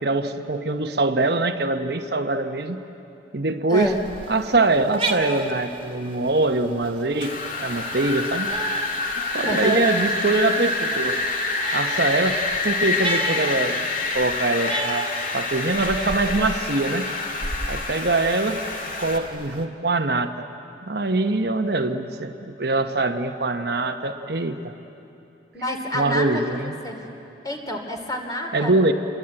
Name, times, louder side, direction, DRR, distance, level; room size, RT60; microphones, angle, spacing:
voice 1, 0.0-2.8 3.3-3.9 4.3-8.5 9.3-11.2 11.7-12.4 12.6-13.8 14.1-17.1 17.7-18.6 19.0-20.5 20.8-24.7 25.9-26.8 28.5-28.9, right 2 dB, 60° right, 6 dB, 1.1 m, -23 dB
voice 2, 3.7-4.0 9.4-9.8 25.5-26.3 26.6-27.0 27.4-28.7, equal, 20° left, 3 dB, 2.7 m, -27 dB
sound 1, 3.7-19.7, right 2 dB, 30° right, 1.9 m, -35 dB
Wind, 7.2-19.2, left 3 dB, 45° left, 2.2 m, -27 dB
28.0 x 22.0 x 9.0 m, 2.8 s
head